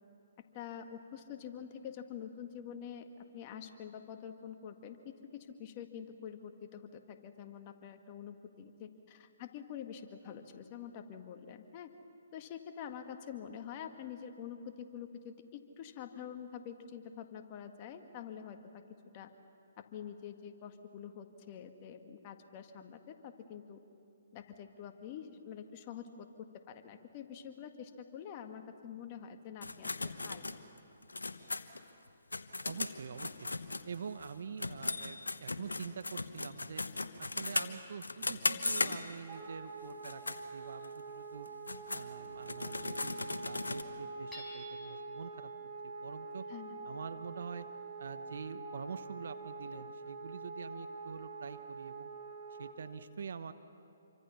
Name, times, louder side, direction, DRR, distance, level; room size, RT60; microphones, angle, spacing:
voice 1, 0.5-3.1 3.3-11.9 12.3-18.6 19.1-19.3 19.9-23.8 24.3-30.4 46.5-46.7, left 8 dB, 35° left, 6 dB, 1.7 m, -46 dB
sound 1, 29.6-34.3 34.6-39.3 39.9-40.4 40.8-40.9 41.4-43.8, left 3 dB, 85° left, 1.1 m, -37 dB
voice 2, 32.6-33.5 33.8-36.8 37.2-41.5 41.9-45.5 45.8-46.4 46.8-47.7 48.0-52.1 52.6-53.5, right 6 dB, 65° right, 11 dB, 1.1 m, -45 dB
Wind instrument woodwind instrument, 39.3-52.8, right 3 dB, 35° right, 3.7 m, -45 dB
Hammer / Chink clink, 44.3-45.1, left 1 dB, 10° left, 5.3 m, -49 dB
27.5 x 24.0 x 5.8 m, 2.7 s
figure-of-eight pair, 135°, 0 cm